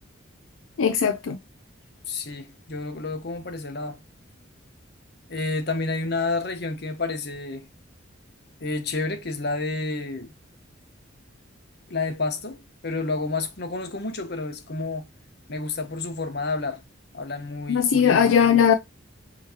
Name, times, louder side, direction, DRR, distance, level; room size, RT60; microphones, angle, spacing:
voice 1, 0.8-1.4 17.7-18.7, left 7 dB, 80° left, 0.4 m, -19 dB
voice 2, 2.1-4.0 5.3-7.7 8.6-10.3 11.9-15.0 15.5-16.8 17.1-18.6, left 3 dB, 55° left, 1.0 m, -30 dB
5.6 x 3.1 x 2.9 m
head